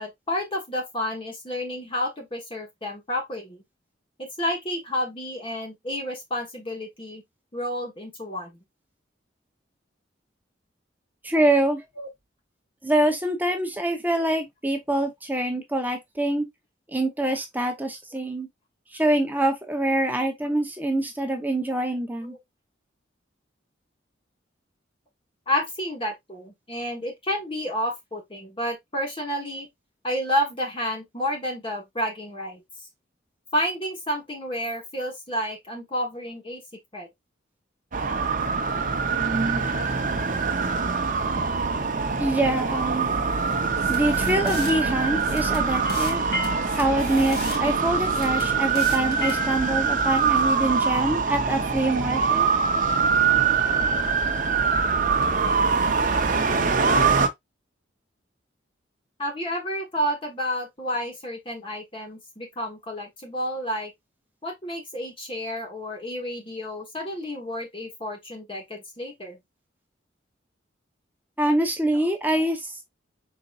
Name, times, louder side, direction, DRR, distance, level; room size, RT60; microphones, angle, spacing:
voice 1, 0.0-3.6 4.2-7.2 7.5-8.5 12.0-12.1 22.2-22.4 25.5-29.7 30.0-32.6 33.5-36.6 36.9-37.1 59.2-63.9 64.4-69.4, equal, 30° left, 1.3 m, -30 dB
voice 2, 11.2-11.8 12.8-16.4 16.9-18.5 18.9-22.3 42.2-43.1 43.9-46.2 46.8-52.5 71.4-72.8, right 1 dB, 10° right, 0.8 m, -25 dB
sound 1, 37.9-57.3, right 5 dB, 45° right, 0.7 m, -23 dB
sound 2, 43.8-44.7 45.2-46.2 46.4-47.6 48.0-49.5, left 3 dB, 55° left, 1.6 m, -39 dB
sound 3, 45.8-51.4, left 1 dB, 90° left, 2.3 m, -36 dB
5.2 x 4.0 x 2.4 m
head